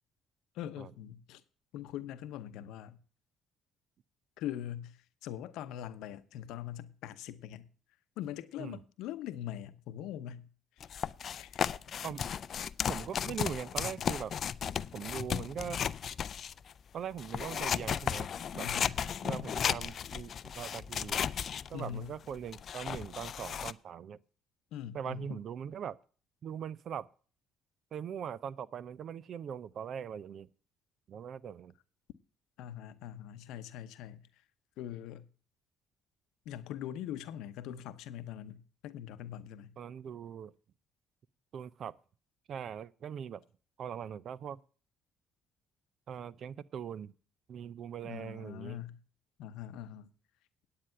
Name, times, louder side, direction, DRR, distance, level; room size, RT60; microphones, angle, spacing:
voice 1, 0.5-1.4 1.7-3.0 4.4-7.7 8.2-10.5 10.8-10.9 11.3-11.6 18.6-18.9 21.7-22.1 24.7-25.4 32.6-34.3 34.8-35.3 36.4-39.7 48.0-49.0 49.4-50.1, left 11 dB, 70° left, 0.8 m, -42 dB
sound 1, 10.8-16.7 17.2-23.7, left 8 dB, 50° left, 0.4 m, -35 dB
voice 2, 12.9-14.3 14.9-15.8 16.9-18.7 19.2-21.2 21.7-24.2 24.9-26.0 26.4-27.1 27.9-30.5 31.1-31.7 39.8-40.5 41.5-41.9 42.5-43.4 43.8-44.6 46.1-47.1 47.5-48.8, right 8 dB, 55° right, 0.5 m, -41 dB
9.7 x 8.6 x 5.7 m
hypercardioid pair, 50°, 0 cm